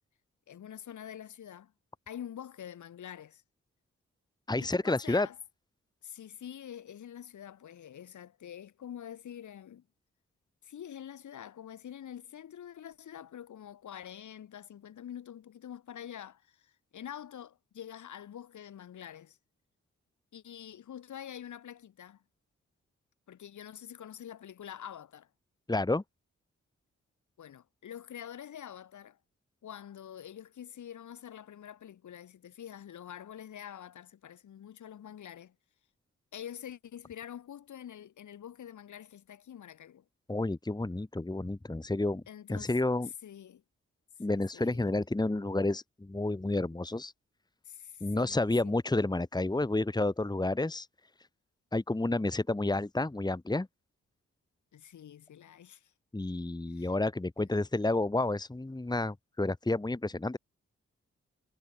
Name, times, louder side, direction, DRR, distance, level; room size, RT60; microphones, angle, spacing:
voice 1, 0.5-1.7 2.1-3.4 4.6-5.4 6.0-9.9 10.6-19.4 20.3-22.2 23.3-25.3 27.4-29.2 29.6-35.6 36.3-40.0 42.3-42.7 43.2-43.6 44.3-44.9 47.6-48.8 54.7-55.9 56.7-56.9, left 10 dB, 85° left, 5.9 m, -46 dB
voice 2, 4.5-5.3 25.7-26.0 40.3-42.2 42.5-43.1 44.2-47.1 48.0-50.9 51.7-53.7 56.1-60.4, left 2 dB, 15° left, 1.5 m, -30 dB
cardioid pair, 50°, 29 cm